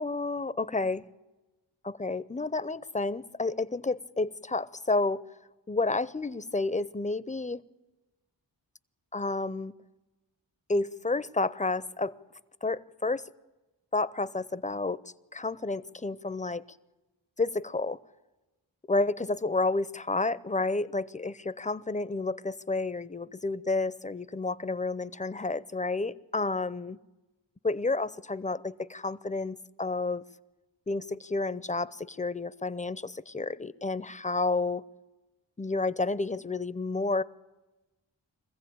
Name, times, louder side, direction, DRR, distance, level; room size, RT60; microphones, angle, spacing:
voice 1, 0.0-1.0 1.8-5.2 5.7-7.6 9.1-9.7 10.7-12.1 12.6-13.3 13.9-15.0 15.3-16.6 17.4-18.0 18.9-27.0 27.6-30.2 30.9-34.8 35.6-37.2, left 3 dB, 15° left, 0.6 m, -30 dB
23.5 x 15.5 x 8.7 m
cardioid pair, 45°, 46 cm